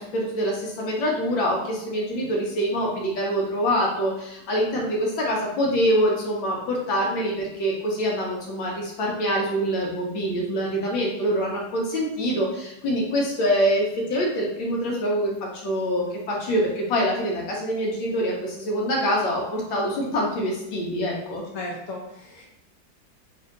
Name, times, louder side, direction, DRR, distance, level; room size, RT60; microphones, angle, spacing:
voice 1, 0.0-21.4, equal, 80° left, -2 dB, 1.5 m, -25 dB
voice 2, 21.5-22.6, left 2 dB, 65° left, -2 dB, 0.9 m, -35 dB
3.3 x 2.8 x 3.6 m, 0.83 s
omnidirectional pair, 2.1 m